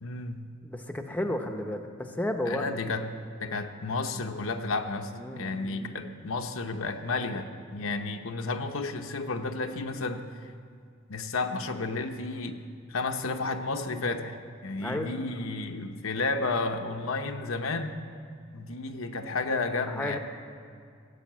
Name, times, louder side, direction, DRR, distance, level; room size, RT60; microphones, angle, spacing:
voice 1, 0.0-0.5 2.5-3.1 3.4-10.3 11.1-12.6 12.9-14.4 14.6-18.0 18.5-20.2, left 3 dB, 75° left, 5 dB, 0.9 m, -32 dB
voice 2, 0.6-2.6 5.2-6.0 14.8-15.1 19.9-20.2, left 1 dB, 10° left, 5 dB, 0.8 m, -33 dB
17.0 x 8.6 x 7.4 m, 2.2 s
head